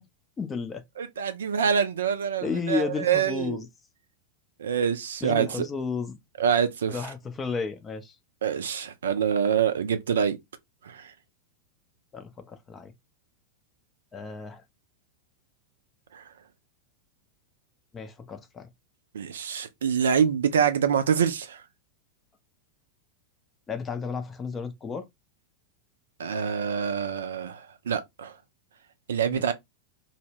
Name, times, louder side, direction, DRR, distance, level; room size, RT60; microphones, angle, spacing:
voice 1, 0.4-0.8 2.4-3.7 5.2-6.2 6.9-8.1 12.1-12.9 14.1-14.6 17.9-18.7 23.7-25.0 29.3-29.5, left 5 dB, 20° left, 0.4 m, -32 dB
voice 2, 1.0-3.6 4.6-5.7 6.4-7.1 8.4-10.4 10.9-11.1 16.1-16.2 19.1-21.6 26.2-28.3 29.1-29.5, right 7 dB, 65° right, 0.3 m, -26 dB
2.1 x 2.0 x 3.1 m
figure-of-eight pair, 90°, 0 cm